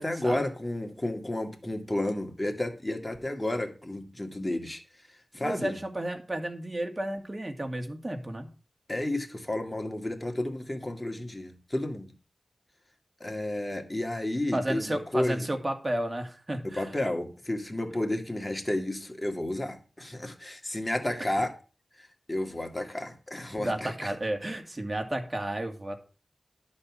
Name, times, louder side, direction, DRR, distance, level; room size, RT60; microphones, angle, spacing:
voice 1, 0.0-4.8 5.3-5.7 8.9-12.1 13.2-15.5 16.8-21.5 22.0-24.1, left 1 dB, 25° left, 4 dB, 2.2 m, -32 dB
voice 2, 5.4-8.5 14.5-16.9 21.2-21.3 23.6-26.0, right 1 dB, 30° right, 5 dB, 2.2 m, -32 dB
11.5 x 4.3 x 7.4 m, 0.36 s
cardioid pair, 45°, 0 cm